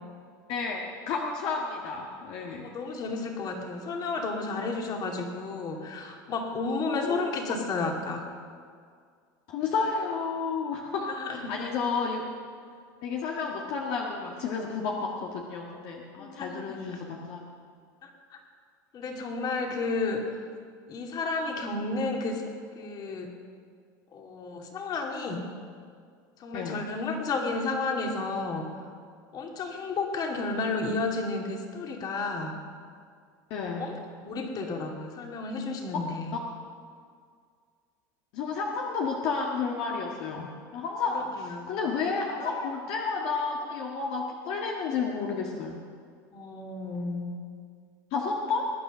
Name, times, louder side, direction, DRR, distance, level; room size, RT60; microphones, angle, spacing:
voice 1, 0.5-2.7 6.9-7.3 9.5-12.2 13.0-17.4 26.5-26.8 33.5-33.9 38.3-45.8 48.1-48.6, left 5 dB, 60° left, -1 dB, 1.7 m, -31 dB
voice 2, 2.6-8.3 11.1-11.7 16.2-16.8 18.0-18.1 18.9-20.2 20.9-22.4 22.7-23.3 24.1-25.5 26.4-28.7 29.3-32.6 33.8-36.4 41.4-41.7 42.4-42.7 46.3-47.3, left 3 dB, 40° left, 2 dB, 2.6 m, -32 dB
21.0 x 9.5 x 6.3 m, 2.1 s
supercardioid pair, 110°, 10 cm